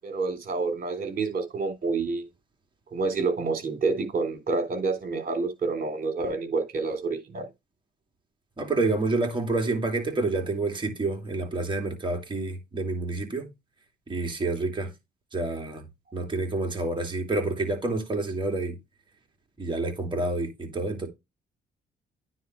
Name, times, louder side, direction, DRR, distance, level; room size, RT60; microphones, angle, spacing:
voice 1, 0.0-2.2 2.9-7.4, right 4 dB, 45° right, 3.7 m, -28 dB
voice 2, 8.6-13.5 14.1-14.9 15.3-15.9 16.1-18.8 19.6-21.1, right 2 dB, 25° right, 3.0 m, -28 dB
9.6 x 3.9 x 4.5 m
cardioid pair, 90°, 20 cm